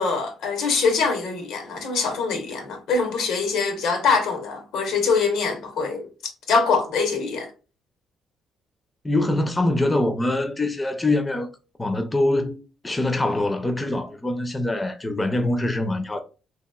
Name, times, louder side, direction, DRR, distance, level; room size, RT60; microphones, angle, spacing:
voice 1, 0.0-7.5, left 4 dB, 85° left, 0.8 m, -24 dB
voice 2, 9.0-11.5 11.8-12.6 12.8-16.2, left 2 dB, 20° left, 0.4 m, -24 dB
2.8 x 2.5 x 2.2 m
cardioid pair, 90°, 0 cm